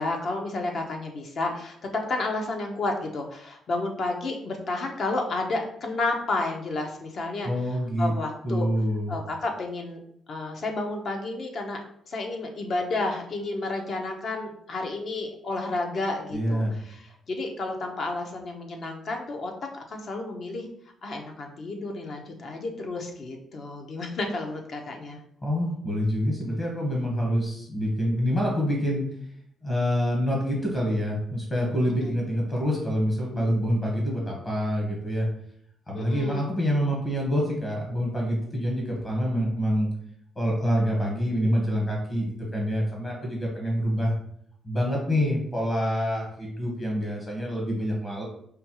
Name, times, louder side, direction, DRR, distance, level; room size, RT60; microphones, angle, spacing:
voice 1, 0.0-7.5 8.0-8.7 9.1-10.0 10.3-11.8 12.1-20.7 21.0-25.2 32.0-32.1 35.9-36.5, left 2 dB, 55° left, 3 dB, 0.8 m, -31 dB
voice 2, 7.4-8.1 8.4-9.1 16.3-16.8 25.4-29.0 29.6-35.3 35.9-39.9 40.3-44.1 44.6-48.2, equal, 30° left, -2 dB, 1.2 m, -26 dB
5.1 x 2.3 x 3.0 m, 0.69 s
cardioid pair, 90°, 0 cm